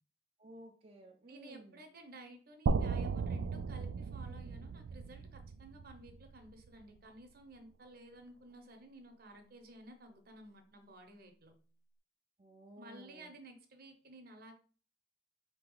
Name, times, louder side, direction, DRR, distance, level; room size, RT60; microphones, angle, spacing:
voice 1, 0.4-1.8 12.4-13.3, right 1 dB, 30° right, -1 dB, 0.5 m, -55 dB
voice 2, 1.3-11.5 12.8-14.5, right 1 dB, 50° right, 5 dB, 0.9 m, -54 dB
sound 1, 2.7-6.7, right 4 dB, 85° right, 0.3 m, -36 dB
4.3 x 2.9 x 3.8 m, 0.40 s
head